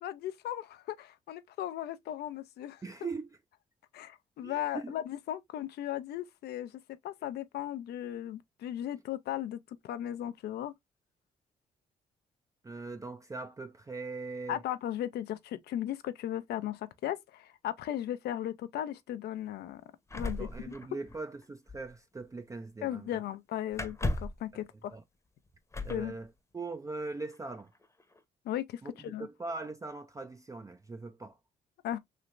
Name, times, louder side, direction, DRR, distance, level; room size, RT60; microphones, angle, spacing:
voice 1, 0.0-2.8 3.9-10.7 14.5-19.8 20.1-20.7 22.8-25.0 25.9-26.2 28.4-29.3 31.8-32.0, left 12 dB, 75° left, 0.5 m, -37 dB
voice 2, 2.8-3.4 4.4-4.9 12.6-14.6 20.2-23.2 24.5-24.6 24.9-25.0 25.8-27.7 28.8-31.4, right 3 dB, 20° right, 0.4 m, -41 dB
sound 1, 20.1-21.4 21.7-21.9 23.7-24.5 25.7-26.1 27.2-27.3 27.7-28.2, left 2 dB, 15° left, 0.8 m, -35 dB
3.2 x 2.9 x 2.5 m
supercardioid pair, 60°, 17 cm